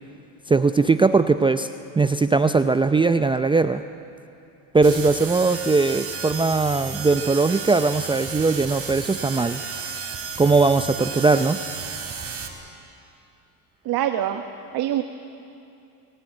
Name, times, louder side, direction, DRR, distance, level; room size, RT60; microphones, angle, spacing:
voice 1, 0.5-1.7 2.0-3.8 4.7-9.6 10.4-11.6, right 3 dB, 10° right, 9 dB, 0.5 m, -19 dB
sound 1, 4.8-12.5, right 6 dB, 30° right, 3.6 m, -33 dB
voice 2, 13.9-14.4 14.7-15.0, right 12 dB, 55° right, 6 dB, 1.2 m, -24 dB
25.0 x 17.0 x 9.1 m, 2.7 s
supercardioid pair, 100°, 44 cm